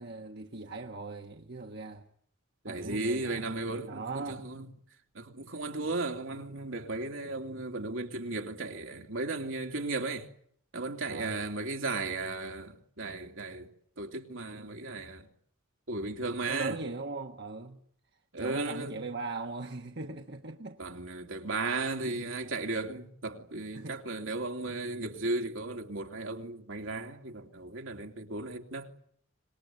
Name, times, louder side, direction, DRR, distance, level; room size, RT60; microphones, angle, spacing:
voice 1, 0.0-2.1 2.7-4.5 5.5-5.9 11.0-11.5 16.5-17.8 18.4-20.8 23.7-24.0 24.3-24.4, right 3 dB, 55° right, 1.4 m, -40 dB
voice 2, 2.6-4.7 5.1-10.3 10.7-13.7 14.0-15.3 15.9-16.7 18.3-19.1 20.8-28.9, right 3 dB, 70° right, 3.1 m, -35 dB
26.0 x 21.0 x 9.3 m
head